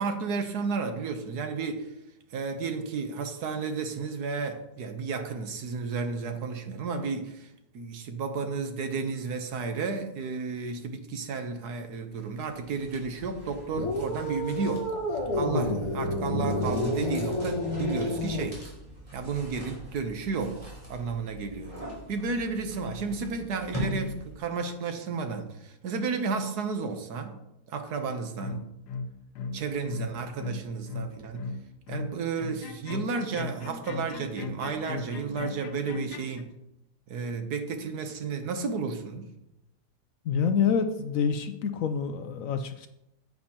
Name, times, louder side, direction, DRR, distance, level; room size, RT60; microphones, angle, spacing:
voice 1, 0.0-1.9 2.3-14.9 15.3-18.6 19.1-21.8 22.1-27.4 27.7-28.7 29.5-31.5 31.9-36.5 37.1-39.3, right 4 dB, 75° right, 1.5 m, -32 dB
sound 1, 12.1-24.5, equal, 20° right, 3.4 m, -42 dB
sound 2, 13.7-18.5, left 1 dB, 40° left, 1.9 m, -29 dB
sound 3, 28.4-36.4, left 4 dB, 85° left, 1.3 m, -37 dB
voice 2, 40.2-42.9, left 6 dB, 70° left, 0.9 m, -27 dB
9.5 x 8.8 x 2.9 m
omnidirectional pair, 1.7 m